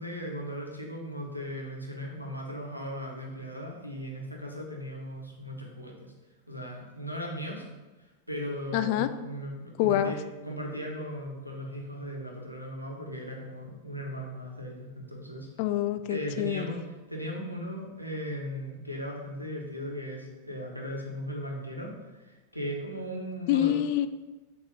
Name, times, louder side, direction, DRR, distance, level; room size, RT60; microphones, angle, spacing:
voice 1, 0.0-6.1 6.5-7.6 8.0-10.2 10.4-15.5 16.1-23.7, equal, 90° right, 0 dB, 1.2 m, -37 dB
voice 2, 8.7-9.1 9.8-10.1 15.6-16.8 23.5-24.1, left 12 dB, 45° left, 11 dB, 0.4 m, -26 dB
7.1 x 3.0 x 5.0 m, 1.1 s
figure-of-eight pair, 90°, 0 cm